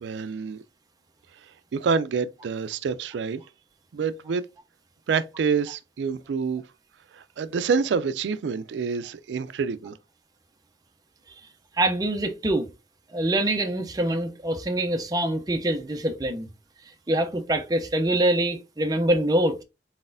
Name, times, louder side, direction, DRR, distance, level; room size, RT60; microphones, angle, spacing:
voice 1, 0.0-0.6 1.7-3.4 3.9-4.4 5.1-6.6 7.1-10.0, right 5 dB, 85° right, 0.4 m, -27 dB
voice 2, 11.8-12.7 13.1-16.5 17.1-19.6, right 1 dB, 20° right, 0.5 m, -24 dB
4.2 x 4.0 x 2.5 m
head